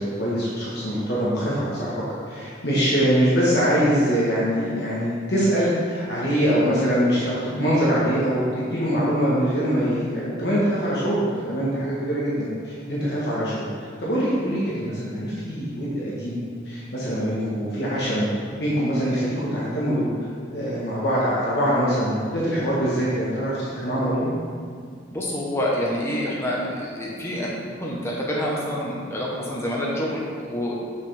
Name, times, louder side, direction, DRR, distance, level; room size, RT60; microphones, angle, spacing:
voice 1, 0.0-16.4 16.6-18.3 18.6-20.1 20.5-24.3, equal, 60° left, -8 dB, 1.3 m, -23 dB
voice 2, 25.1-30.7, equal, 15° left, -5 dB, 0.9 m, -27 dB
6.6 x 5.6 x 3.4 m, 2.1 s
head